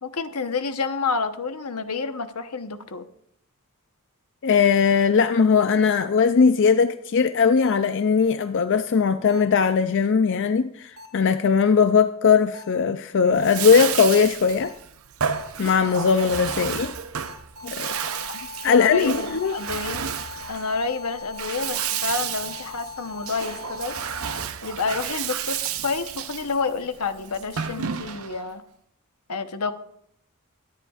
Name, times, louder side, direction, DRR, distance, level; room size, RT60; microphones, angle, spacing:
voice 1, 0.0-3.1 18.3-20.0 20.5-24.0 24.6-25.6 25.8-28.6 29.3-29.7, left 4 dB, 85° left, 1.1 m, -29 dB
voice 2, 4.4-14.7 15.6-16.9 17.6-17.9 18.6-19.6, left 6 dB, 55° left, 0.4 m, -19 dB
sound 1, 7.6-7.7 9.3-9.4 11.0-11.1 12.5-12.6 13.6-13.7 14.6-14.7 15.3-15.4 15.8-15.9 16.3-16.4 16.8-16.9 17.2-24.4, left 5 dB, 80° right, 3.8 m, -40 dB
Bathtub (filling or washing), 13.3-28.5, right 8 dB, 65° right, 0.7 m, -31 dB
23.5 x 11.0 x 2.5 m
head